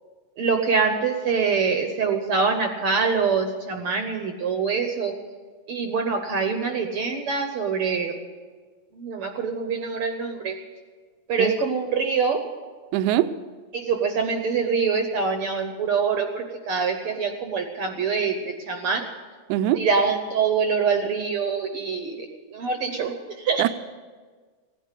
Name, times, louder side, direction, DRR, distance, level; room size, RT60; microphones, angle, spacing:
voice 1, 0.4-5.1 5.7-8.1 9.0-10.6 11.3-12.4 13.7-19.1 19.8-23.6, right 5 dB, 65° right, 5 dB, 1.5 m, -25 dB
voice 2, 12.9-13.3 19.5-19.8 23.6-23.7, right 13 dB, 80° right, 12 dB, 2.0 m, -22 dB
17.0 x 10.0 x 8.3 m, 1.5 s
omnidirectional pair, 3.5 m